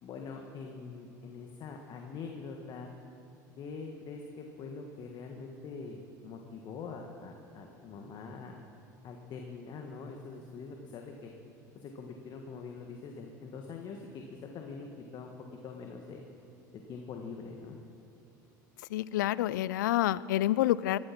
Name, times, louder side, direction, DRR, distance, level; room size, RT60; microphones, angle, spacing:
voice 1, 0.0-2.9 3.6-8.6 9.0-11.3 11.7-15.3 15.6-16.2 16.7-17.8, left 4 dB, 50° left, 2 dB, 1.6 m, -44 dB
voice 2, 18.9-21.0, left 14 dB, 80° left, 19 dB, 0.4 m, -28 dB
17.5 x 12.0 x 6.0 m, 2.6 s
hypercardioid pair, 85°, 10 cm